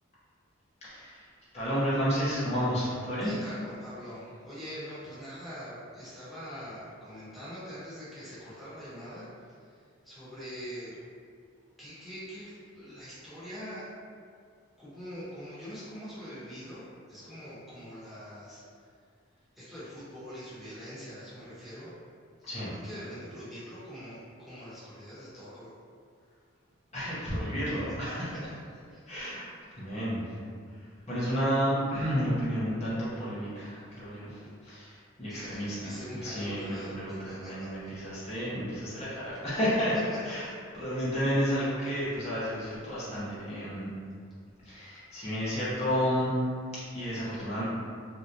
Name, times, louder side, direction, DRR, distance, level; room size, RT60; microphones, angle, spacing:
voice 1, 0.8-1.2 1.5-3.3 22.5-22.7 26.9-28.3 29.1-29.4 29.8-30.4 31.1-40.0 40.2-40.5 40.7-43.9 44.6-46.3 46.7-47.6, equal, 35° left, -10 dB, 0.8 m, -31 dB
voice 2, 3.2-9.3 10.0-11.0 11.8-13.9 14.8-18.6 19.6-21.9 22.5-25.7 27.4-27.5 28.9-29.1 29.4-29.5 34.4-34.5 35.3-38.0 40.3-40.6, equal, ahead, -12 dB, 1.0 m, -43 dB
3.2 x 2.6 x 2.8 m, 2.1 s
head